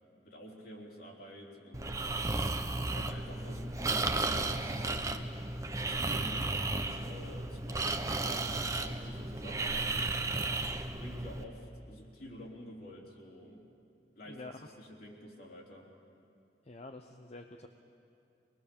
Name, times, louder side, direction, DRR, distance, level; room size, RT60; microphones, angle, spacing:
voice 1, 0.2-2.2 2.9-5.4 5.9-10.1 10.8-13.6 14.2-15.9, equal, 60° left, -1 dB, 3.6 m, -49 dB
Breathing, 1.7-11.4, right 2 dB, 20° right, 0.9 m, -34 dB
voice 2, 14.2-14.7 16.6-17.7, left 2 dB, 40° left, 5 dB, 0.8 m, -47 dB
24.0 x 20.5 x 7.0 m, 2.7 s
head